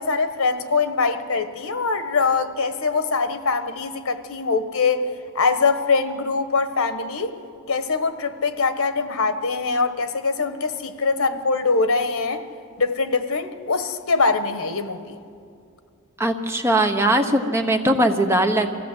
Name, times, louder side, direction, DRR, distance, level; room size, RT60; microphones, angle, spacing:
voice 1, 0.0-5.1 5.3-7.3 7.7-12.4 12.8-15.2, left 4 dB, 80° left, 10 dB, 1.3 m, -23 dB
voice 2, 16.2-18.7, right 1 dB, 10° right, 5 dB, 1.1 m, -20 dB
25.0 x 16.0 x 7.9 m, 2.4 s
head